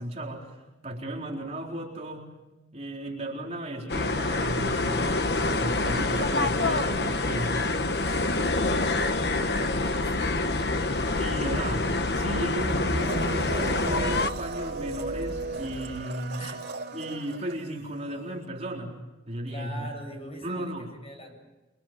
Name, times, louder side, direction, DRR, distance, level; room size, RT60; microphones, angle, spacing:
voice 1, 0.0-2.3 2.7-7.5 11.1-11.9 12.1-16.4 16.9-19.0 19.3-19.9 20.4-20.9, right 1 dB, 35° right, -1 dB, 4.1 m, -35 dB
sound 1, 3.9-14.3, left 2 dB, 55° left, 1.2 m, -26 dB
sound 2, 7.9-16.0, left 1 dB, 75° left, 1.9 m, -42 dB
voice 2, 9.2-10.5 16.4-16.6 19.5-21.4, equal, 30° left, 3 dB, 7.8 m, -42 dB
Domestic sounds home sounds, 12.9-18.2 18.4-18.5, right 3 dB, 60° right, 2.2 m, -36 dB
29.0 x 24.0 x 7.6 m, 1.0 s
head